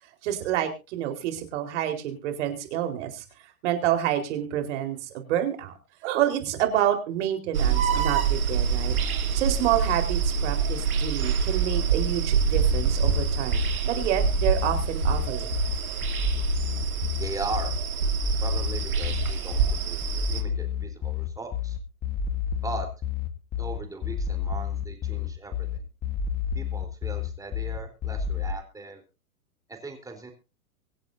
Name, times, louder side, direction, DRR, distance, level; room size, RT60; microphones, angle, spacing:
voice 1, 0.2-3.2 3.6-5.7 6.0-8.9 9.3-13.6 13.8-15.5, right 11 dB, 55° right, 5 dB, 4.5 m, -28 dB
sound 1, 7.5-20.4, right 6 dB, 80° right, 3.3 m, -26 dB
sound 2, 12.5-28.5, left 7 dB, 20° left, 1.5 m, -30 dB
voice 2, 17.2-17.8 18.4-21.8 22.6-22.9 23.6-25.8 26.5-29.0 29.7-30.3, right 3 dB, 10° right, 4 dB, 3.8 m, -38 dB
25.0 x 8.4 x 2.7 m, 0.30 s
hypercardioid pair, 125°, 43 cm